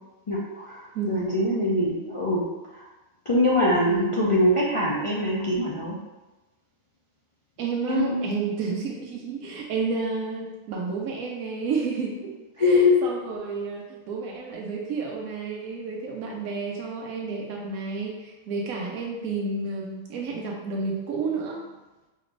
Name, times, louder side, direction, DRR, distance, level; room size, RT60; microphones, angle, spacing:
voice 1, 0.3-2.5 2.7-2.8 3.3-6.0 7.9-8.3 12.6-12.9, left 1 dB, 55° left, -7 dB, 0.3 m, -23 dB
voice 2, 7.6-21.7, right 4 dB, 90° right, -1 dB, 1.1 m, -31 dB
4.9 x 3.0 x 2.6 m, 1.1 s
omnidirectional pair, 1.4 m